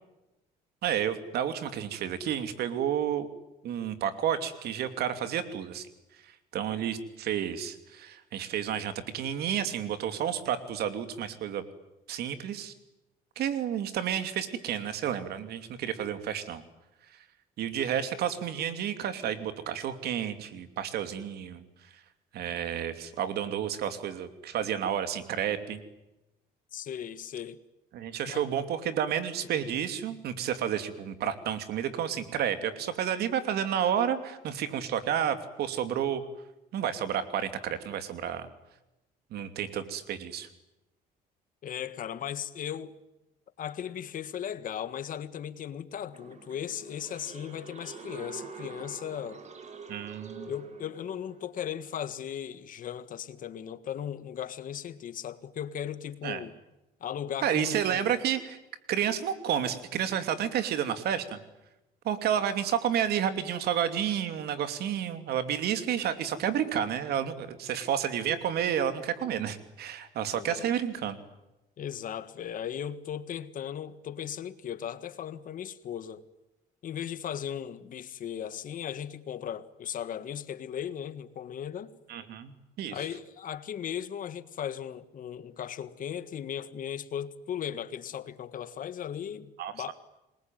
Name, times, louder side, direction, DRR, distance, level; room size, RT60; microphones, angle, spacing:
voice 1, 0.8-3.3 3.6-5.9 6.2-11.6 12.1-12.7 13.4-16.6 17.6-21.6 22.3-25.8 27.9-36.2 36.7-38.5 39.3-40.5 49.9-50.5 56.2-56.4 57.4-58.6 58.9-61.4 62.0-71.2 82.1-83.0 89.6-89.9, right 9 dB, 70° right, 2.8 m, -31 dB
voice 2, 26.7-27.6 28.2-28.5 41.6-43.0 43.6-49.4 50.4-56.5 57.0-58.1 70.3-70.6 71.8-76.2 76.8-81.9 82.9-89.9, left 9 dB, 55° left, 1.7 m, -37 dB
sound 1, 46.1-51.5, right 4 dB, 45° right, 4.5 m, -46 dB
27.5 x 21.5 x 9.4 m
cardioid pair, 110°, 17 cm